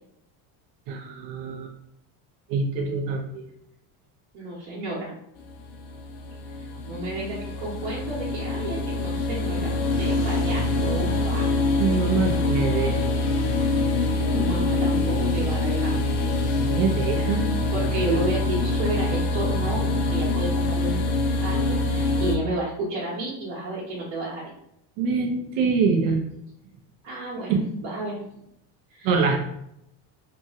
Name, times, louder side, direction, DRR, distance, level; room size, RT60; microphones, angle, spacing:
voice 1, 0.9-1.7 2.5-3.4 11.8-13.0 16.7-17.5 25.0-26.2 27.5-27.6 29.0-29.4, right 5 dB, 50° right, 3 dB, 0.5 m, -24 dB
voice 2, 4.3-5.1 6.8-11.5 13.9-15.9 17.2-17.4 17.7-21.0 21.4-24.5 27.0-28.2 28.9-29.1, right 2 dB, 70° right, -7 dB, 1.0 m, -31 dB
sound 1, 5.4-22.4, left 2 dB, 75° left, 0.6 m, -25 dB
2.9 x 2.6 x 2.4 m, 0.77 s
cardioid pair, 170°, 46 cm